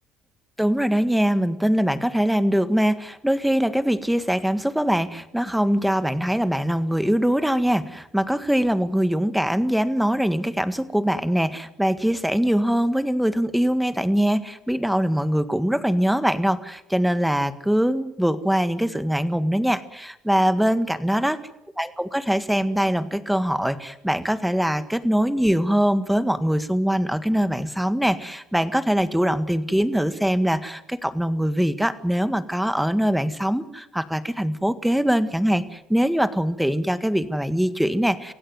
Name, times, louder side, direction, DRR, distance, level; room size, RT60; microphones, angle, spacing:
voice 1, 0.6-21.4 21.8-38.3, equal, 5° right, 13 dB, 1.7 m, -22 dB
25.5 x 16.5 x 9.6 m, 0.86 s
supercardioid pair, 85°, 0 cm